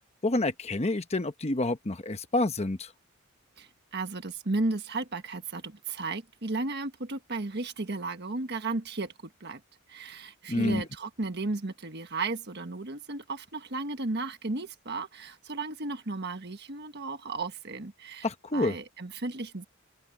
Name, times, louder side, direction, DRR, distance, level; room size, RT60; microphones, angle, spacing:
voice 1, 0.2-2.9 10.5-10.8 18.2-18.7, left 2 dB, 30° left, 1.0 m, -28 dB
voice 2, 3.6-9.6 9.9-19.7, right 3 dB, 50° right, 1.5 m, -34 dB
open air
head